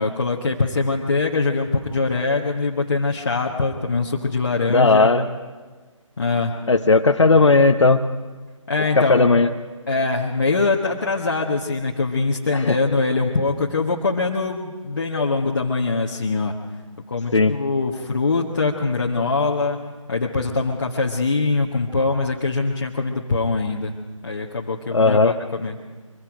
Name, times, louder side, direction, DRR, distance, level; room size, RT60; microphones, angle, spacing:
voice 1, 0.0-5.1 6.2-6.5 8.7-9.3 9.9-16.6 17.1-19.8 20.1-23.9 24.2-25.7, left 3 dB, 40° left, -2 dB, 1.4 m, -23 dB
voice 2, 4.7-5.2 6.7-8.0 9.0-9.5 12.5-12.8 17.3-17.5 24.9-25.3, left 3 dB, 60° left, 6 dB, 0.9 m, -16 dB
24.0 x 22.0 x 5.1 m, 1.3 s
figure-of-eight pair, 155°, 17 cm